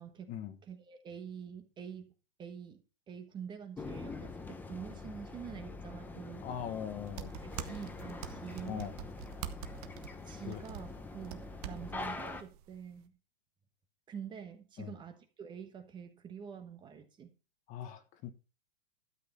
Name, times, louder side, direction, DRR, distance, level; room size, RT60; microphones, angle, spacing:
voice 1, 0.0-0.3 0.7-2.1 2.4-2.8 3.1-6.5 7.4-8.9 10.2-13.1 14.1-17.3, right 7 dB, 15° right, 1.2 m, -46 dB
sound 1, 3.8-12.4, left 3 dB, 5° left, 0.8 m, -44 dB
voice 2, 6.4-7.3 8.6-8.9 10.5-10.6 14.8-14.9 17.7-18.3, left 9 dB, 25° left, 1.2 m, -40 dB
sound 2, 7.0-13.1, right 11 dB, 40° right, 1.2 m, -46 dB
12.5 x 8.0 x 4.1 m
hypercardioid pair, 150°, 30 cm